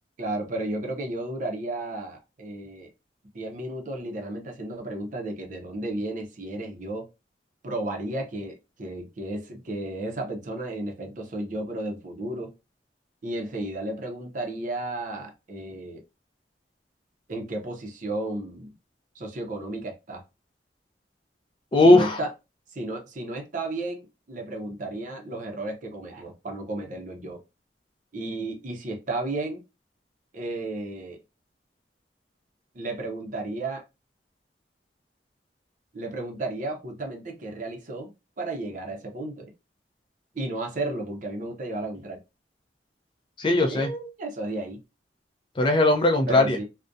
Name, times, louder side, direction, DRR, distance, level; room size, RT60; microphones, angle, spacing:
voice 1, 0.2-2.9 3.3-7.1 7.6-12.5 13.2-16.0 17.3-18.7 19.1-20.2 21.8-22.3 22.7-27.4 28.1-29.6 30.3-31.2 32.7-33.8 35.9-38.1 38.4-39.5 40.3-42.2 43.7-44.8 46.3-46.6, right 2 dB, 45° right, 0.6 m, -33 dB
voice 2, 21.7-22.2 43.4-43.9 45.6-46.6, left 2 dB, 30° left, 0.4 m, -18 dB
2.4 x 2.1 x 2.5 m
head